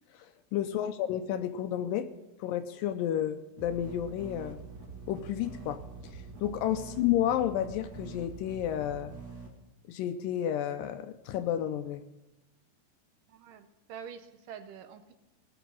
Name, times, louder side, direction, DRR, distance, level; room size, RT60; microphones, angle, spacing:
voice 1, 0.1-2.1 2.4-4.6 5.1-5.8 6.1-9.1 9.9-12.0, left 11 dB, 80° left, 9 dB, 2.1 m, -31 dB
sound 1, 3.6-9.5, right 4 dB, 35° right, 2.1 m, -45 dB
voice 2, 13.3-15.1, right 7 dB, 75° right, 9 dB, 2.2 m, -46 dB
19.0 x 7.0 x 7.4 m, 1.0 s
omnidirectional pair, 4.3 m